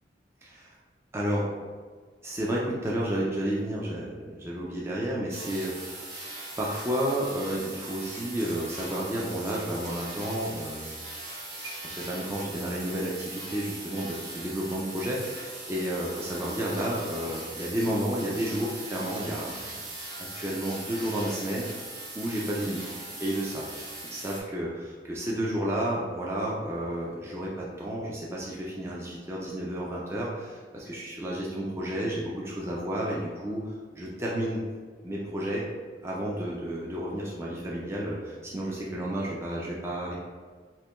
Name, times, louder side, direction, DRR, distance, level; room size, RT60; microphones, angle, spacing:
voice 1, 0.4-0.7 1.1-1.5 2.2-6.2 6.6-11.0 11.6-19.7 20.4-21.7 22.1-22.8 23.2-23.7 24.0-34.6 35.0-35.7 36.0-40.2, right 1 dB, 15° right, -5 dB, 0.4 m, -31 dB
sound 1, 5.3-24.4, right 2 dB, 80° right, 1.1 m, -40 dB
sound 2, 8.0-9.0 9.3-12.9 13.4-13.5, right 1 dB, 45° right, 1.0 m, -50 dB
5.5 x 2.2 x 2.2 m, 1.5 s
head